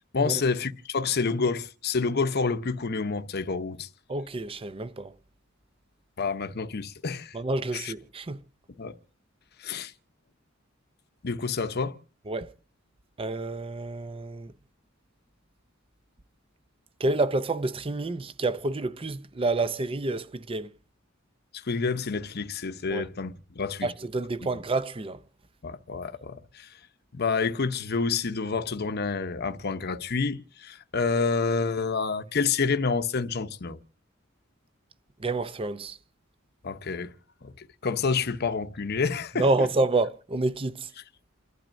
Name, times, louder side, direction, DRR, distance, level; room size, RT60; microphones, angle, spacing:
voice 1, 0.1-3.9 6.2-7.4 7.7-7.9 8.8-8.9 9.6-9.9 11.2-11.9 21.5-23.9 24.4-24.5 25.6-26.7 27.1-33.8 36.6-37.1 37.4-39.7, left 4 dB, 50° left, 0.8 m, -28 dB
voice 2, 4.1-5.1 7.3-8.4 12.3-12.5 13.2-14.5 17.0-20.7 22.9-23.1 23.8-25.2 35.2-36.0 39.4-40.9, right 2 dB, 25° right, 0.6 m, -28 dB
29.0 x 12.0 x 2.6 m
head